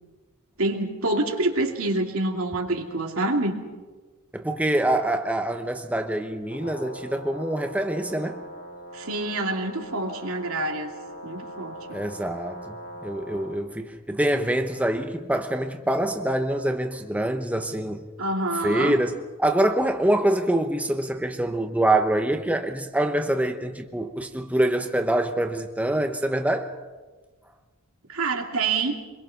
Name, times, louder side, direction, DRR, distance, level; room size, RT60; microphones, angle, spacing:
voice 1, 0.6-3.6 8.9-10.9 11.2-12.0 18.2-19.0 28.1-28.9, right 2 dB, 80° right, 2.6 m, -26 dB
voice 2, 4.3-8.4 11.9-12.8 13.0-18.0 18.6-26.7, right 1 dB, 5° right, 1.0 m, -25 dB
Brass instrument, 6.4-13.6, equal, 65° left, 4.2 m, -41 dB
24.5 x 22.0 x 5.8 m
head